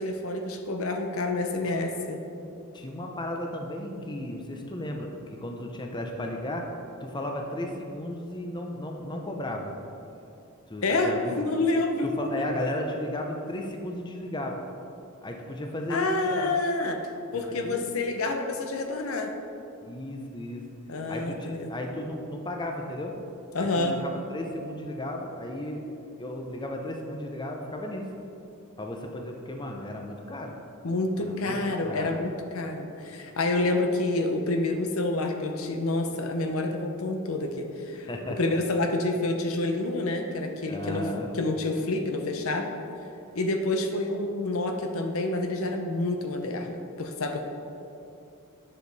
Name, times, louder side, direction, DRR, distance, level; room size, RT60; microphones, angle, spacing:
voice 1, 0.0-2.2 10.8-12.1 12.4-12.5 15.9-17.0 17.3-19.3 20.9-21.7 23.5-24.0 30.8-38.1 38.4-41.1 41.3-42.7 43.3-47.4, left 2 dB, 70° left, 4 dB, 0.8 m, -28 dB
voice 2, 2.7-6.7 7.0-9.7 10.7-11.4 12.0-14.6 15.2-16.5 17.3-17.8 19.8-20.6 21.1-23.1 23.6-25.8 26.2-28.1 28.8-30.5 31.2-32.2 38.1-38.4 40.7-41.3, left 1 dB, 20° left, 2 dB, 0.6 m, -34 dB
10.0 x 6.5 x 4.0 m, 2.7 s
head